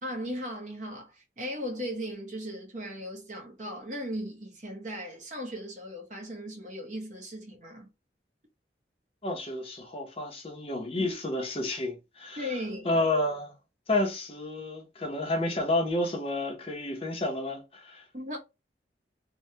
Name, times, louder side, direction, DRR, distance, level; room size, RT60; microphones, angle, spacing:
voice 1, 0.0-7.9 11.0-11.1 12.4-12.9 18.1-18.4, equal, 40° right, 0.9 m, -37 dB
voice 2, 9.2-12.5 12.9-13.5 13.9-18.0, left 2 dB, 30° left, 0.6 m, -30 dB
3.2 x 2.1 x 2.7 m
head